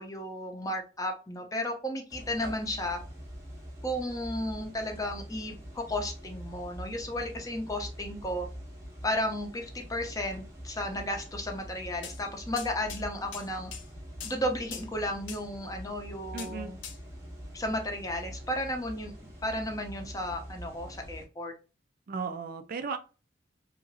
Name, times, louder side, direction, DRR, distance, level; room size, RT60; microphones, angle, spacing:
voice 1, 0.0-3.0 3.8-8.5 9.0-13.7 14.2-16.8 17.5-19.1 19.4-21.5, left 1 dB, 20° left, 3 dB, 0.6 m, -34 dB
sound 1, 2.1-21.2, equal, 15° right, 0.9 m, -44 dB
sound 2, 12.0-12.2 12.6-13.0 13.3-13.9 14.2-14.4 14.7-14.9 15.3-15.4 16.4-16.5 16.8-17.0, left 8 dB, 90° left, 0.6 m, -41 dB
voice 2, 16.3-16.7 22.1-23.0, right 5 dB, 50° right, 9 dB, 0.4 m, -35 dB
2.8 x 2.5 x 2.6 m, 0.33 s
head